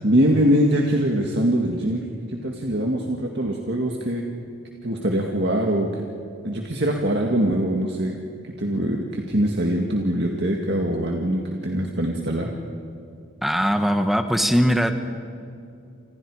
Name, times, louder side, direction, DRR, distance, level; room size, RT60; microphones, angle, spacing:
voice 1, 0.0-4.3 4.8-6.1 6.4-8.1 8.6-12.5, equal, 55° right, 1 dB, 2.1 m, -23 dB
voice 2, 13.4-14.9, equal, ahead, 6 dB, 1.4 m, -20 dB
30.0 x 27.0 x 5.0 m, 2.5 s
head